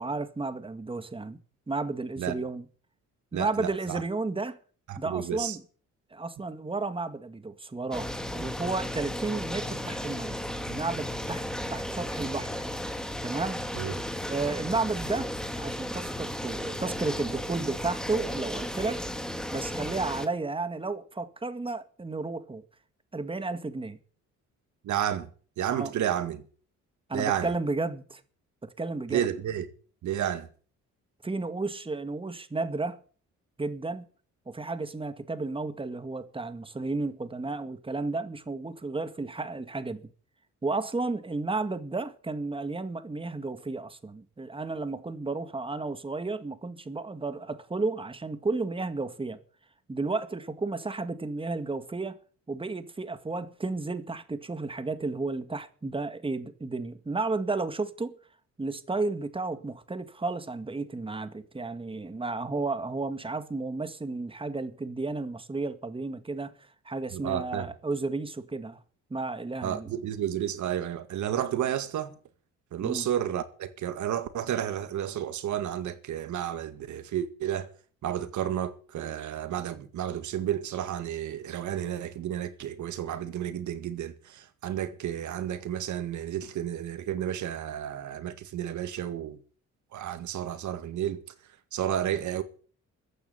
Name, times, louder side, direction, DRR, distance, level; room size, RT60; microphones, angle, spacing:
voice 1, 0.0-1.4 1.7-2.7 3.3-4.6 5.0-5.6 6.1-12.7 13.2-13.6 14.3-19.0 19.5-22.6 23.1-24.0 25.7-25.9 27.1-28.2 28.6-29.3 31.2-33.0 33.6-34.0 34.5-40.0 40.6-49.4 49.9-52.2 52.5-58.2 58.6-66.5 66.9-68.8 69.1-69.9 72.8-73.1, right 3 dB, 15° right, 1.9 m, -32 dB
voice 2, 3.3-4.0 4.9-5.6 13.7-13.9 24.8-25.3 25.6-26.4 27.1-27.5 29.1-29.7 30.0-30.5 67.1-67.7 69.6-72.1 72.7-77.7 78.0-89.4 89.9-91.2 91.7-92.4, right 10 dB, 75° right, 1.9 m, -31 dB
sound 1, 7.9-20.3, left 1 dB, ahead, 2.5 m, -34 dB
14.5 x 9.5 x 9.5 m
cardioid pair, 90°, 30 cm